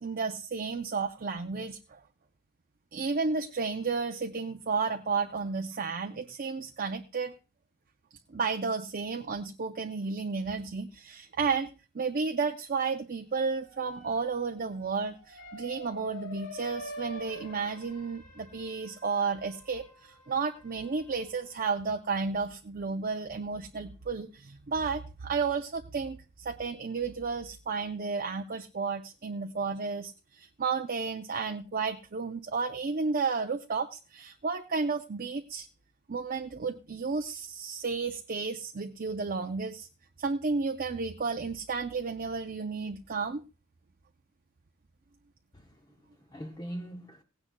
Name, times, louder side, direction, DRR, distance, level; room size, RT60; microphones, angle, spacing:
voice 1, 0.0-2.0 2.9-7.3 8.3-35.7 36.1-39.9 40.2-43.4, right 4 dB, 40° right, 0.6 m, -32 dB
sound 1, 13.4-21.7, left 1 dB, 75° left, 3.9 m, -47 dB
voice 2, 45.5-47.2, equal, 20° left, 0.8 m, -42 dB
17.5 x 16.5 x 2.2 m
head